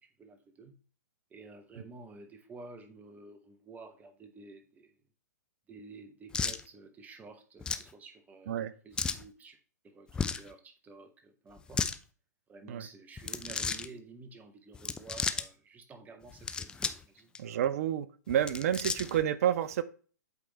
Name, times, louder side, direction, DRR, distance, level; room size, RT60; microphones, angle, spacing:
voice 1, 0.2-0.8 1.3-5.0 5.7-8.6 8.8-9.6 9.8-11.8 12.5-17.3, right 3 dB, 15° right, 8 dB, 1.0 m, -51 dB
sound 1, 6.3-6.6 7.6-7.9 9.0-9.2 10.1-10.5 11.6-12.0 13.2-13.9 14.7-15.5 16.3-17.0 17.3-17.4 18.3-19.2, left 5 dB, 10° left, 0.3 m, -34 dB
voice 2, 17.4-19.8, right 10 dB, 55° right, 14 dB, 0.6 m, -29 dB
8.4 x 3.5 x 4.0 m, 0.38 s
hypercardioid pair, 120°, 10 cm